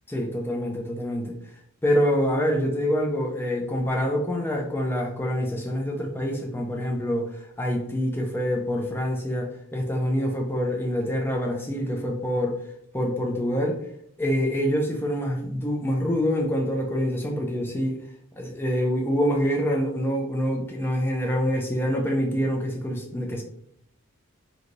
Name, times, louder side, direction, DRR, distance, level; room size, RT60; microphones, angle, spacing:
voice 1, 0.1-1.4 1.8-12.6 12.9-13.8 14.2-18.0 18.4-23.4, equal, 10° left, 0.4 m, -26 dB
3.0 x 2.7 x 2.5 m
head